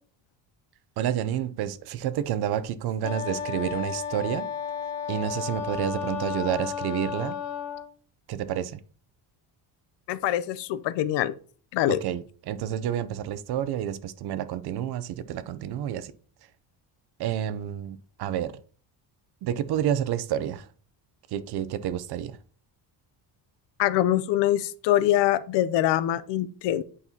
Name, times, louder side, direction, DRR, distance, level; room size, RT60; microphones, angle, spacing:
voice 1, 1.0-4.5 5.1-7.4 8.3-8.8 11.9-16.1 17.2-18.6 19.4-20.7 21.3-22.4, right 10 dB, 60° right, 0.6 m, -29 dB
Wind instrument woodwind instrument, 3.0-7.9, left 8 dB, 35° left, 1.4 m, -33 dB
voice 2, 10.1-11.3 11.7-12.0 23.8-26.8, left 12 dB, 70° left, 0.6 m, -24 dB
8.3 x 5.4 x 2.8 m
cardioid pair, 155°, 44 cm